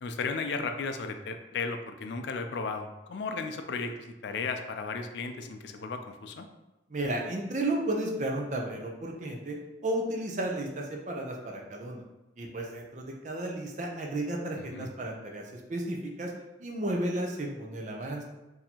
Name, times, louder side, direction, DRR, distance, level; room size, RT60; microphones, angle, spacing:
voice 1, 0.0-6.5 14.6-14.9, left 4 dB, 70° left, 6 dB, 0.3 m, -35 dB
voice 2, 6.9-9.6 9.8-12.0 12.4-16.3 16.6-18.2, right 1 dB, 40° right, 1 dB, 0.5 m, -33 dB
4.2 x 2.7 x 2.8 m, 1.1 s
head